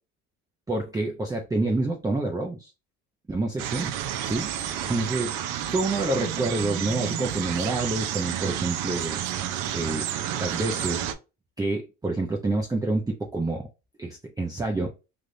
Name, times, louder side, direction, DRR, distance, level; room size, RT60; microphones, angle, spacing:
voice 1, 0.7-2.7 3.3-3.9 4.2-5.3 5.7-9.2 9.7-10.1 10.4-11.1 11.6-13.7 14.0-14.9, right 2 dB, 10° right, 1 dB, 0.6 m, -28 dB
sound 1, 3.6-11.1, right 10 dB, 75° right, 0.6 m, -30 dB
3.4 x 2.4 x 2.6 m, 0.28 s
supercardioid pair, 90°, 32 cm